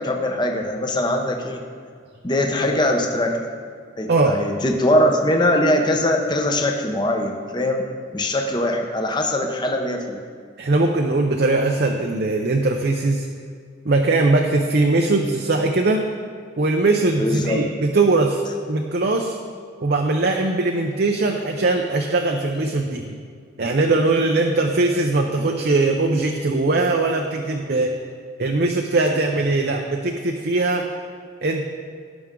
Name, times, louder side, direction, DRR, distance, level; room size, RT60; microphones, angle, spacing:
voice 1, 0.0-1.6 2.2-3.4 4.0-7.8 8.1-10.2 17.2-17.6, left 1 dB, 20° left, 3 dB, 0.8 m, -21 dB
voice 2, 4.1-4.4 10.6-13.3 13.8-16.0 16.6-18.4 18.7-19.4 19.8-23.2 23.6-27.9 28.4-30.9 31.4-31.6, right 2 dB, 50° right, 2 dB, 0.6 m, -20 dB
17.0 x 6.1 x 3.8 m, 2.1 s
head